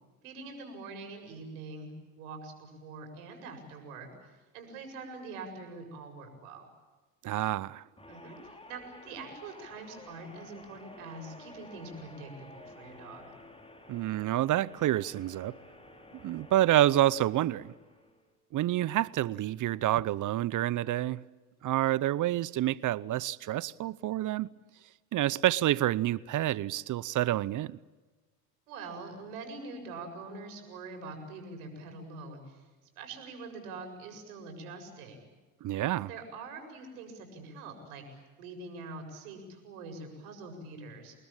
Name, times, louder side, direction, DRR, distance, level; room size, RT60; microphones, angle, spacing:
voice 1, 0.2-4.1 4.5-6.7 8.1-13.3 28.7-32.6 33.0-35.3 36.1-41.1, right 3 dB, 75° right, 7.6 m, -44 dB
voice 2, 7.2-7.8 13.9-15.5 16.2-17.7 18.5-21.2 21.6-24.5 25.1-27.8 35.6-36.1, right 14 dB, 40° right, 0.8 m, -28 dB
sound 1, 8.0-18.3, left 2 dB, 10° left, 4.8 m, -52 dB
27.5 x 20.5 x 9.0 m
hypercardioid pair, 80°, 46 cm